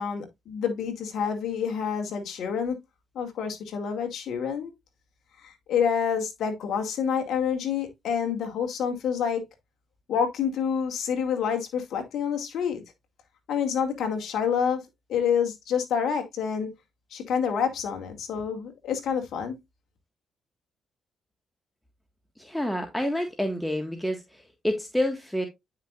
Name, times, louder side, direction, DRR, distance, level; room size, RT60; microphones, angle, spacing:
voice 1, 0.0-2.8 3.2-4.7 5.4-9.4 10.1-12.8 13.5-14.8 15.1-16.7 17.1-19.6, left 7 dB, 75° left, 2.1 m, -28 dB
voice 2, 22.4-25.5, left 1 dB, 5° left, 1.6 m, -28 dB
9.8 x 5.8 x 2.4 m
supercardioid pair, 65°, 0 cm